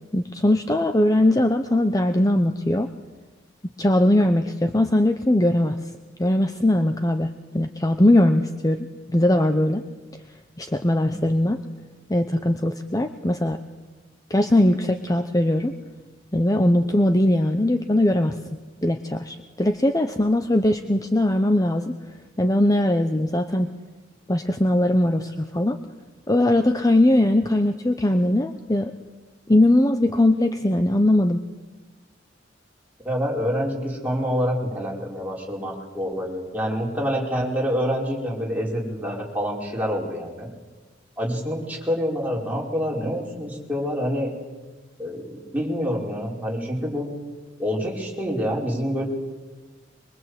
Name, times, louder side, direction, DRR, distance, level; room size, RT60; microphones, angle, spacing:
voice 1, 0.1-2.9 3.8-5.8 6.2-9.8 10.6-11.6 12.1-13.6 14.3-15.7 16.3-18.4 18.8-21.9 22.4-23.7 24.3-25.8 26.3-28.9 29.5-31.4, left 1 dB, 20° left, 7 dB, 0.9 m, -20 dB
voice 2, 33.0-40.5 41.2-44.3 45.0-47.1 47.6-49.1, equal, 10° right, -3 dB, 5.1 m, -27 dB
24.0 x 23.5 x 8.2 m, 1.3 s
head